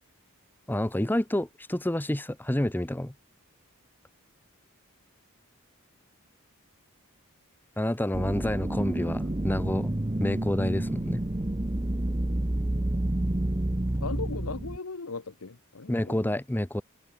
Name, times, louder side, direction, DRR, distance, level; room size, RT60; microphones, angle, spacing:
voice 1, 0.7-3.1 7.8-11.2 15.9-16.8, left 1 dB, 10° left, 0.7 m, -29 dB
sound 1, 8.1-14.8, right 1 dB, 20° right, 0.9 m, -29 dB
voice 2, 14.0-16.3, left 4 dB, 80° left, 1.1 m, -37 dB
open air
head